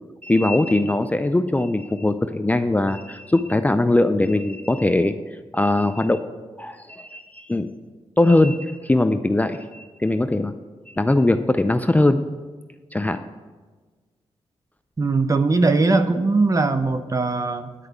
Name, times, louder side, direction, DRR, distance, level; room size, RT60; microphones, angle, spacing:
voice 1, 0.2-5.1 5.5-6.2 6.6-7.7 8.2-10.5 11.0-12.2 12.9-13.2, left 2 dB, 15° left, 9 dB, 0.4 m, -20 dB
voice 2, 15.0-17.7, right 3 dB, 30° right, 10 dB, 0.7 m, -20 dB
9.9 x 4.8 x 8.0 m, 1.4 s
cardioid pair, 70°, 11 cm